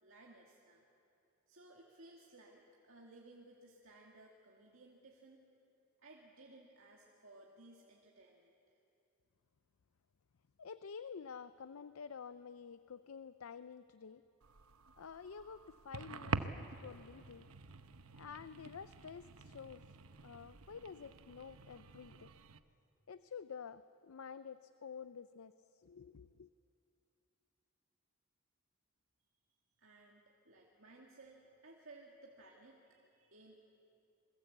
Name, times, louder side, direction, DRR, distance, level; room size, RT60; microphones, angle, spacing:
voice 1, 0.0-0.8 1.5-5.4 6.0-8.8 29.8-33.6, right 2 dB, 65° right, -2 dB, 2.3 m, -59 dB
voice 2, 10.6-14.2 15.0-17.5 18.1-19.8 20.2-22.3 23.1-26.5, left 6 dB, 85° left, 13 dB, 0.5 m, -50 dB
sound 1, 14.4-22.6, right 4 dB, 90° right, 0.9 m, -46 dB
28.0 x 21.5 x 8.1 m, 2.6 s
head